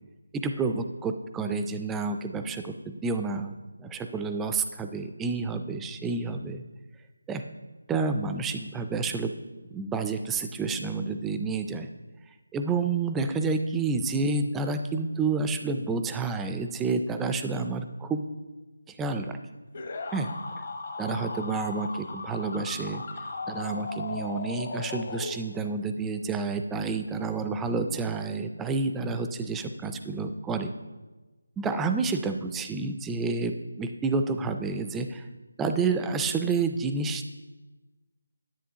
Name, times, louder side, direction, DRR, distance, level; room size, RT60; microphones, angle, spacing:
voice 1, 0.3-3.5 3.8-6.6 7.3-7.4 7.9-9.3 9.7-11.9 12.5-18.3 18.9-19.4 20.1-20.3 21.0-23.0 23.5-30.7 31.6-35.2 35.6-37.3, right 4 dB, 5° right, 7 dB, 0.3 m, -29 dB
sound 1, 19.7-25.8, left 3 dB, 45° left, 0.7 m, -37 dB
10.0 x 9.0 x 2.8 m, 1.2 s
figure-of-eight pair, 165°, 0 cm